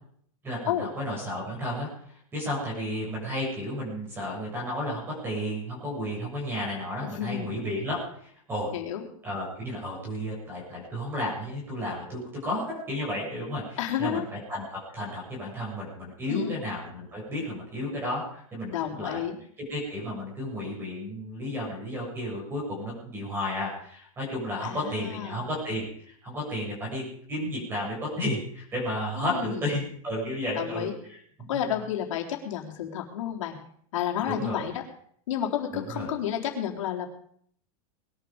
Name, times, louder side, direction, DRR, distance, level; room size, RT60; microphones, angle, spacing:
voice 1, 0.4-8.7 9.2-19.2 19.7-31.2 31.5-31.6 34.3-34.6 35.7-36.1, left 1 dB, 10° right, -3 dB, 7.2 m, -33 dB
voice 2, 7.0-7.5 8.7-9.0 13.8-14.2 16.3-16.6 18.7-19.4 24.6-25.4 29.2-29.7 30.5-30.9 31.5-33.6 33.9-34.8 35.3-37.1, left 10 dB, 60° left, 1 dB, 3.9 m, -31 dB
21.0 x 11.5 x 5.3 m, 0.62 s
supercardioid pair, 175°, 18 cm